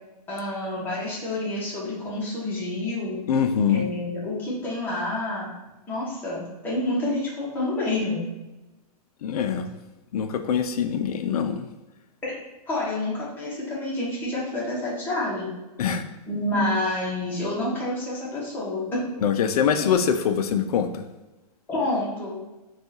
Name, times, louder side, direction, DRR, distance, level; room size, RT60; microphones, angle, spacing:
voice 1, 0.3-3.3 3.7-5.5 5.9-8.2 12.2-12.4 12.7-15.5 16.3-19.0 21.7-22.4, left 2 dB, 10° left, -6 dB, 0.8 m, -28 dB
voice 2, 3.3-3.9 9.2-9.7 10.1-11.7 15.8-16.0 19.2-21.0, left 7 dB, 70° left, 8 dB, 0.4 m, -23 dB
3.5 x 2.3 x 2.7 m, 1.1 s
hypercardioid pair, 160°, 20 cm